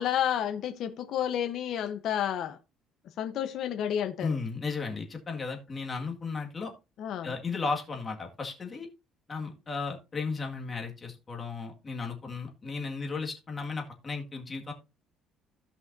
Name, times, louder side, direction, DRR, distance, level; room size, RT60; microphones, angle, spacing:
voice 1, 0.0-2.6 3.2-4.4 7.0-7.3, left 10 dB, 60° left, 1.0 m, -30 dB
voice 2, 4.2-6.7 7.2-8.9 9.3-14.7, left 4 dB, 25° left, 2.0 m, -35 dB
16.5 x 5.6 x 2.7 m
cardioid pair, 145°, 0 cm